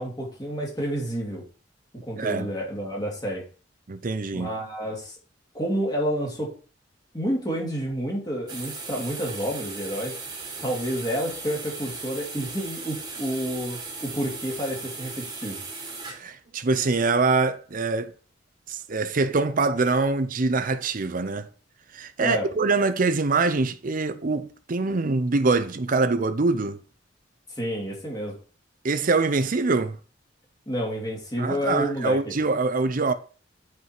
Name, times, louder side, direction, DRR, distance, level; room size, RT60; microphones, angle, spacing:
voice 1, 0.0-1.4 2.1-3.4 4.3-5.1 5.5-6.5 7.1-10.2 10.6-15.6 22.2-22.5 27.6-28.3 30.7-32.3, equal, 20° left, 2.7 m, -29 dB
voice 2, 2.2-2.5 3.9-4.5 16.1-18.1 18.7-21.5 21.9-26.8 28.8-30.0 31.4-33.1, right 3 dB, 50° right, 0.6 m, -24 dB
sound 1, 8.5-16.2, right 4 dB, 25° right, 1.8 m, -37 dB
8.1 x 4.7 x 4.7 m
head